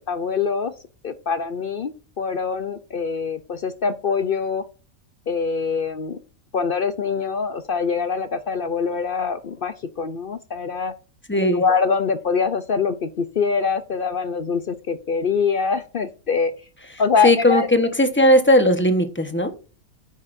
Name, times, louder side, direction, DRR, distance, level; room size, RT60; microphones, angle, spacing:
voice 1, 0.1-0.7 1.0-4.6 5.3-6.2 6.5-10.9 11.5-16.5 17.0-17.7, left 5 dB, 55° left, 12 dB, 0.6 m, -24 dB
voice 2, 11.3-11.6 17.2-19.5, left 1 dB, 10° left, 7 dB, 1.0 m, -17 dB
9.4 x 9.3 x 2.6 m, 0.35 s
omnidirectional pair, 1.5 m